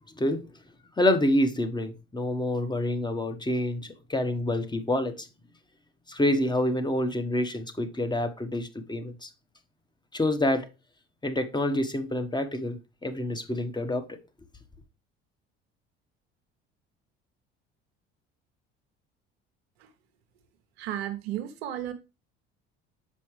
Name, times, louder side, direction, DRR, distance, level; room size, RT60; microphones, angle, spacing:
voice 1, 0.2-0.5 1.0-5.3 6.1-9.3 10.1-10.7 11.2-14.2, left 1 dB, 15° left, 1.2 m, -27 dB
voice 2, 20.8-21.9, right 12 dB, 85° right, 1.0 m, -33 dB
6.9 x 5.4 x 3.3 m
hypercardioid pair, 65°, 31 cm